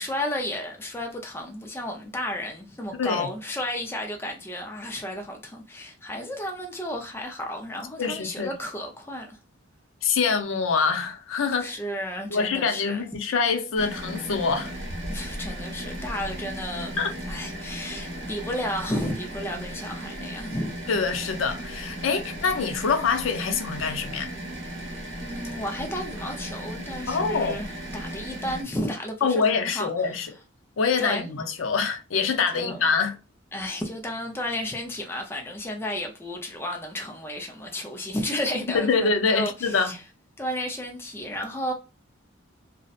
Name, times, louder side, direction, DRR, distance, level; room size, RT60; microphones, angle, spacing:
voice 1, 0.0-9.4 11.6-13.1 15.1-20.7 25.2-29.9 31.0-31.4 32.5-32.8 33.5-40.0 40.4-41.7, left 1 dB, 10° left, 0.4 m, -33 dB
voice 2, 3.0-3.3 8.0-8.5 10.0-11.7 12.3-14.7 17.0-17.1 20.9-24.3 27.1-27.6 29.2-30.3 30.8-33.1 38.7-40.0, left 5 dB, 80° left, 0.5 m, -25 dB
sound 1, 13.8-28.6, right 1 dB, 65° right, 0.9 m, -36 dB
2.7 x 2.1 x 2.3 m
head